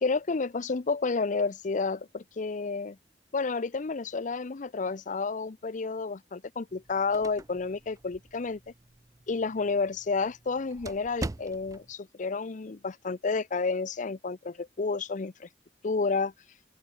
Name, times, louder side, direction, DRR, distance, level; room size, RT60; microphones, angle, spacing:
voice 1, 0.0-3.0 3.3-8.6 9.3-15.5 15.8-16.3, left 4 dB, 45° left, 0.6 m, -30 dB
sound 1, 6.7-11.9, right 2 dB, 20° right, 0.4 m, -43 dB
head